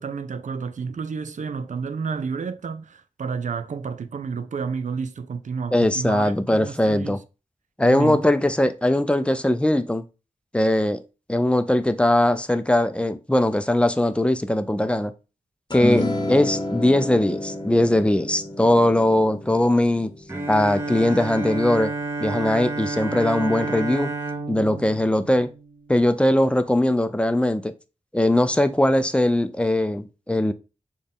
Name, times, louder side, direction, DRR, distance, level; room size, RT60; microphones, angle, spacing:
voice 1, 0.0-7.2 7.8-8.2, right 5 dB, 75° right, 0.5 m, -30 dB
voice 2, 5.7-7.2 7.8-10.0 10.5-11.0 11.3-15.1 15.7-20.1 20.5-21.9 22.2-24.1 24.5-25.5 25.9-27.7 28.1-30.5, left 1 dB, 10° left, 0.5 m, -20 dB
sound 1, 15.7-22.2, left 1 dB, 35° left, 1.0 m, -31 dB
Bowed string instrument, 20.3-26.2, right 3 dB, 20° right, 1.0 m, -30 dB
6.3 x 2.3 x 3.5 m
wide cardioid pair, 60°, 13 cm